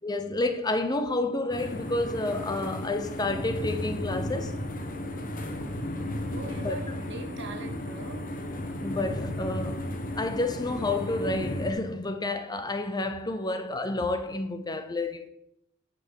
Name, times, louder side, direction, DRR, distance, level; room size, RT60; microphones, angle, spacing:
voice 1, 0.0-4.6 6.6-6.8 8.8-9.9 10.1-15.3, left 2 dB, 20° left, 0.8 m, -30 dB
sound 1, 1.5-11.7, left 1 dB, 40° left, 1.4 m, -34 dB
voice 2, 6.3-8.4 13.5-13.6, right 2 dB, 60° right, 1.7 m, -41 dB
10.5 x 5.9 x 6.4 m
head